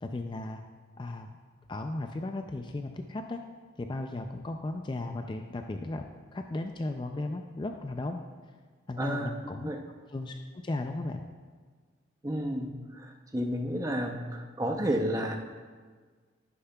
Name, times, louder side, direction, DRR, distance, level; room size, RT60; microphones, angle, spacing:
voice 1, 0.0-0.6 1.0-1.4 1.7-3.4 3.8-8.2 8.9-9.7 10.1-11.3, left 2 dB, 25° left, 5 dB, 0.3 m, -36 dB
voice 2, 9.0-9.3 9.6-9.8 12.2-15.4, equal, 15° right, 3 dB, 0.6 m, -31 dB
11.0 x 10.0 x 2.3 m, 1.5 s
head